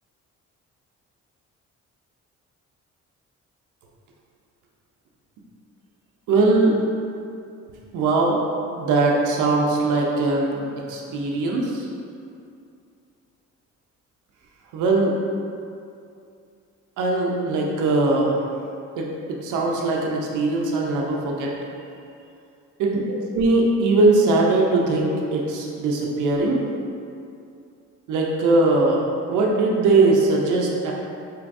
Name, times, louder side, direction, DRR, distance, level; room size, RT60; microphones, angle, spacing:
voice 1, 6.3-6.8 7.9-8.4 8.8-11.9 14.7-15.2 17.0-18.4 19.0-21.5 22.8-26.7 28.1-30.9, right 2 dB, 85° right, -1 dB, 0.7 m, -20 dB
4.6 x 3.1 x 2.6 m, 2.5 s
cardioid pair, 90°, 30 cm